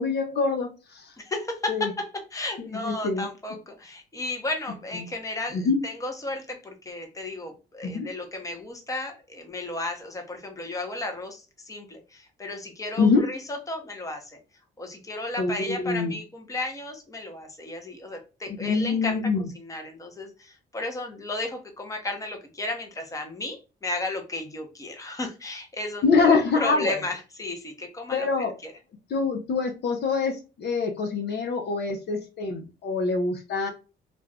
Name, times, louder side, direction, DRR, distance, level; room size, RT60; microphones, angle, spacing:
voice 1, 0.0-1.0 1.7-1.9 2.7-3.3 5.5-5.8 7.8-8.1 13.0-13.2 15.4-16.1 18.6-19.5 26.0-27.0 28.1-28.5 29.1-33.7, left 4 dB, 55° left, 3 dB, 0.7 m, -25 dB
voice 2, 1.2-14.4 14.8-19.2 19.5-28.7 33.6-33.7, left 2 dB, 15° left, 4 dB, 0.8 m, -34 dB
2.5 x 2.3 x 3.3 m, 0.31 s
cardioid pair, 90°, 20 cm